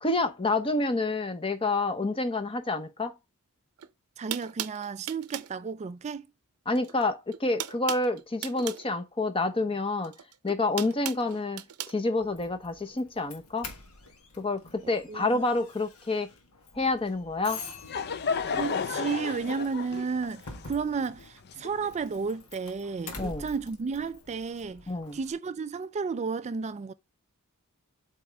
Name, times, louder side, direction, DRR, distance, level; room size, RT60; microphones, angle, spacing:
voice 1, 0.0-3.1 6.7-10.1 10.4-13.7 14.4-16.3 16.7-17.6 23.2-23.5 24.9-25.2, left 2 dB, 25° left, 0.9 m, -28 dB
sound 1, 3.8-3.9 4.3-5.5 6.7-7.0 7.3-8.9 10.0-11.9, right 12 dB, 80° right, 0.6 m, -37 dB
voice 2, 4.2-6.3 15.1-15.4 18.5-26.9, right 5 dB, 30° right, 0.3 m, -33 dB
Doorbell, 12.2-25.3, left 3 dB, 80° left, 1.5 m, -47 dB
Laughter / Crowd, 17.5-22.2, left 5 dB, 50° left, 0.5 m, -33 dB
7.8 x 4.3 x 3.4 m
head